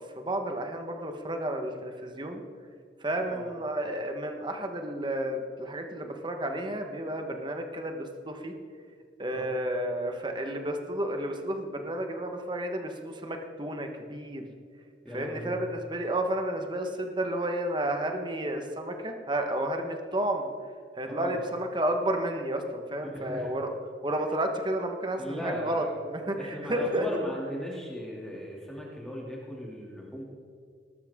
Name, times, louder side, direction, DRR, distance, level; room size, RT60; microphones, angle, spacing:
voice 1, 0.2-2.4 3.0-8.5 9.2-14.5 15.1-20.5 20.9-23.7 24.0-27.1, right 1 dB, 25° right, 4 dB, 1.4 m, -31 dB
voice 2, 15.0-15.5 21.1-21.4 23.1-23.5 25.2-26.0 26.4-30.2, equal, 5° left, -4 dB, 2.7 m, -37 dB
19.0 x 13.0 x 3.7 m, 2.2 s
head